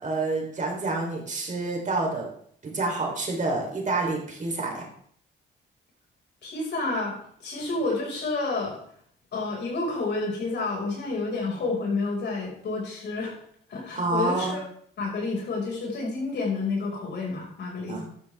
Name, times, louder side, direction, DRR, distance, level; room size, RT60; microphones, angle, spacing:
voice 1, 0.0-2.3 2.6-4.8 14.0-14.6 17.9-18.0, right 3 dB, 40° right, 0 dB, 4.0 m, -28 dB
voice 2, 6.4-8.8 9.3-13.3 13.7-14.6 15.0-18.1, left 3 dB, 60° left, -2 dB, 6.0 m, -29 dB
13.0 x 12.5 x 3.7 m, 0.62 s
cardioid pair, 90°, 20 cm